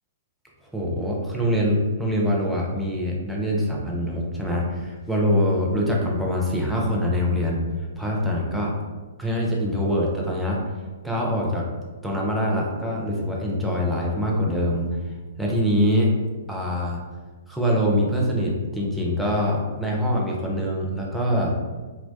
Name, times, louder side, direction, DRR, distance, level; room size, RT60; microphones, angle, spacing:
voice 1, 0.7-7.6 8.0-8.7 9.2-10.6 11.0-11.6 12.0-14.9 15.4-16.1 16.5-17.0 17.5-21.5, equal, ahead, -4 dB, 0.5 m, -24 dB
2.5 x 2.1 x 2.2 m, 1.3 s
figure-of-eight pair, 115°, 0 cm